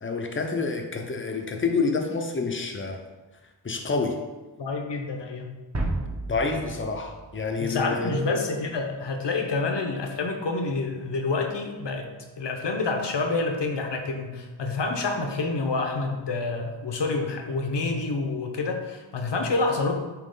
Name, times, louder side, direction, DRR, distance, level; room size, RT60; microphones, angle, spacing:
voice 1, 0.0-3.0 3.6-4.2 6.3-8.2, left 4 dB, 25° left, 4 dB, 0.7 m, -28 dB
voice 2, 4.6-5.5 7.6-19.9, left 3 dB, 65° left, 3 dB, 0.9 m, -28 dB
sound 1, 5.7-8.2, right 2 dB, 35° right, 1.2 m, -33 dB
9.1 x 3.0 x 3.8 m, 1.2 s
wide cardioid pair, 125°, 46 cm